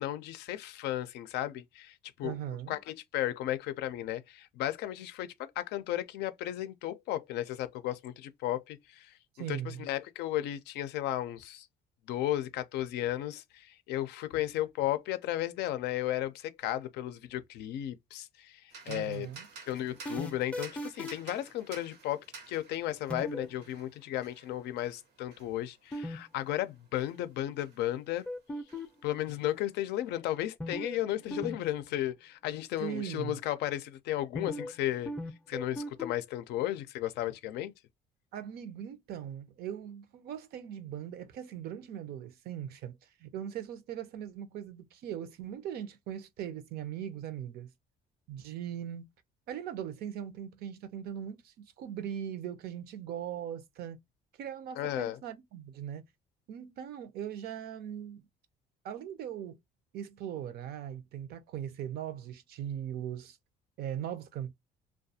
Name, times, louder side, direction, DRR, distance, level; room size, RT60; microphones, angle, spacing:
voice 1, 0.0-2.4 2.7-9.1 9.5-11.7 12.1-19.3 19.7-28.3 29.0-35.1 35.5-37.7 54.8-55.2, left 13 dB, 80° left, 0.4 m, -34 dB
voice 2, 2.2-2.8 9.4-9.8 18.9-19.5 32.8-33.4 38.3-47.7 48.3-49.1 49.5-54.0 54.4-56.0 56.5-58.2 58.8-59.6 59.9-63.4 63.8-64.5, right 10 dB, 65° right, 0.5 m, -40 dB
sound 1, 18.7-28.4 28.7-30.0, right 4 dB, 90° right, 0.8 m, -53 dB
sound 2, 19.7-21.3 23.1-23.5 25.9-26.2 26.4-26.5 28.3-29.1 30.6-31.0 31.3-31.6 31.8-31.9 34.3-34.8 35.1-36.1, left 1 dB, 5° left, 0.4 m, -37 dB
2.4 x 2.2 x 2.7 m
cardioid pair, 110°, 17 cm